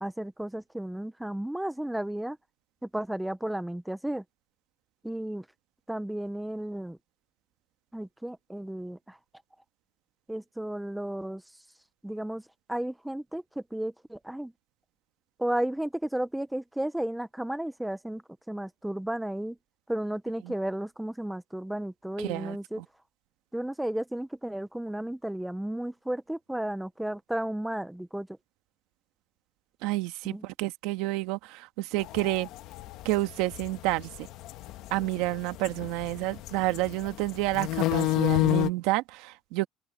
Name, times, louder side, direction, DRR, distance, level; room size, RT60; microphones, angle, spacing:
voice 1, 0.0-2.4 2.8-4.2 5.0-5.5 5.9-7.0 7.9-9.2 10.3-11.4 12.0-14.5 15.4-19.6 19.9-22.8 23.5-28.3 30.2-30.5, right 1 dB, 5° right, 0.5 m, -33 dB
voice 2, 22.2-22.6 29.8-32.5 33.0-34.3 34.9-39.7, right 18 dB, 80° right, 1.4 m, -29 dB
sound 1, 32.0-38.7, left 16 dB, 55° left, 1.1 m, -30 dB
open air
cardioid pair, 180°, 0 cm